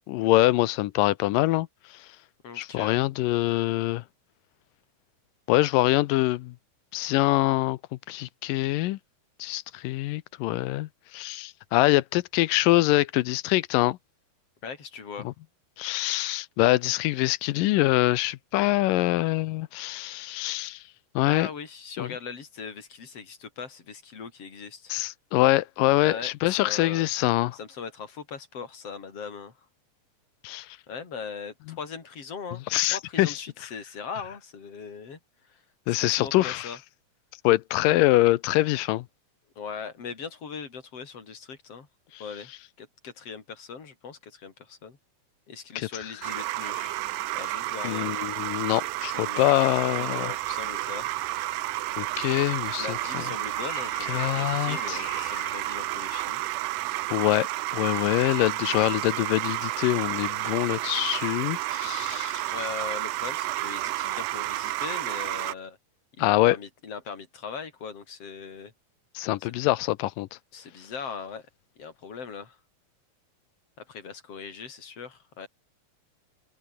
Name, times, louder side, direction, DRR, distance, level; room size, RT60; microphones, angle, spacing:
voice 1, 0.1-2.1 2.6-4.0 5.5-6.5 6.9-7.8 8.1-9.0 9.4-14.0 15.3-15.4 15.8-20.8 21.2-21.5 22.0-22.1 24.9-27.6 30.4-30.7 32.7-33.4 35.9-36.7 37.4-39.1 42.1-42.2 45.8-45.9 47.8-50.3 52.0-53.2 54.1-55.0 57.1-62.5 66.2-66.6 69.2-70.3, left 17 dB, 85° left, 2.4 m, -24 dB
voice 2, 2.4-3.0 14.6-15.3 21.3-24.9 26.0-27.1 27.5-29.6 30.6-35.2 35.4-36.8 39.6-41.9 42.2-42.5 42.8-45.0 45.5-47.0 47.3-48.1 49.1-51.1 52.8-56.4 62.5-65.8 66.2-68.7 69.4-69.5 70.5-71.5 71.8-72.6 73.8-75.5, left 6 dB, 45° left, 4.7 m, -40 dB
sound 1, 46.2-65.5, right 17 dB, 75° right, 2.3 m, -31 dB
sound 2, 50.2-56.4, left 4 dB, 60° left, 8.3 m, -46 dB
omnidirectional pair, 3.9 m